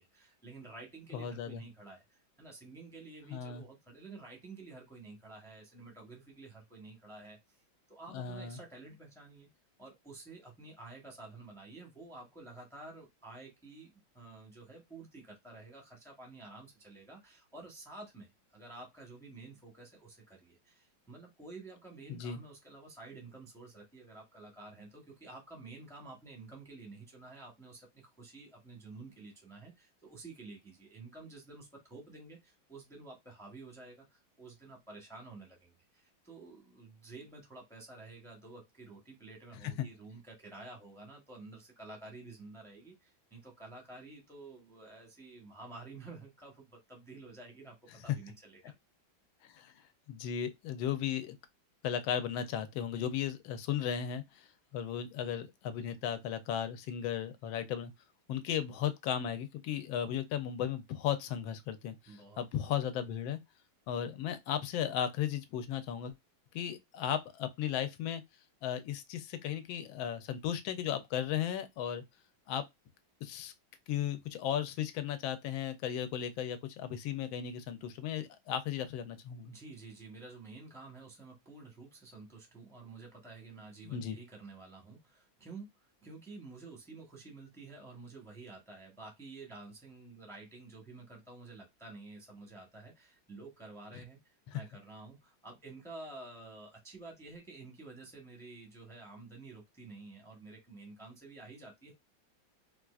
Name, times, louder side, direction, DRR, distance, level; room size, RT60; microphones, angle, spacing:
voice 1, 0.0-7.6 7.9-9.5 9.8-47.8 48.0-48.7 62.1-62.5 79.4-94.2 94.5-101.9, right 3 dB, 5° left, 0.5 m, -51 dB
voice 2, 1.1-1.6 3.3-3.6 8.1-8.6 22.1-22.4 39.8-39.9 49.4-49.7 50.1-51.4 51.8-57.9 58.3-63.4 63.9-66.2 66.5-68.2 68.6-72.0 72.5-72.6 73.2-73.5 73.9-79.5 83.8-84.2 94.5-94.6, left 9 dB, 90° left, 1.4 m, -35 dB
4.3 x 2.4 x 2.4 m
omnidirectional pair, 2.1 m